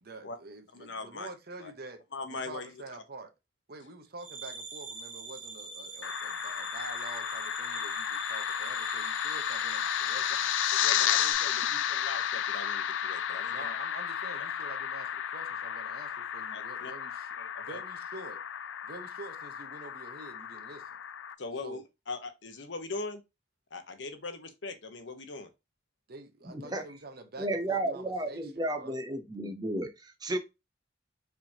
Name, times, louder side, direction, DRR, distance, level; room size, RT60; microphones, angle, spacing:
voice 1, 0.0-2.0 2.3-3.3 3.7-10.5 11.6-11.7 13.5-18.4 18.8-20.9 21.6-21.8 26.1-28.9, right 2 dB, 55° right, 0.9 m, -47 dB
voice 2, 0.7-1.3 1.6-1.7 2.1-2.7 10.7-13.8 16.5-16.9 17.4-17.8 21.4-23.2 23.7-25.5, left 3 dB, 75° left, 1.0 m, -41 dB
sound 1, 4.2-11.3, right 3 dB, 85° right, 1.6 m, -43 dB
sound 2, 6.0-21.3, left 9 dB, 90° left, 0.4 m, -33 dB
voice 3, 26.5-26.8 27.4-30.4, right 1 dB, 20° right, 0.8 m, -33 dB
4.9 x 3.6 x 2.8 m
head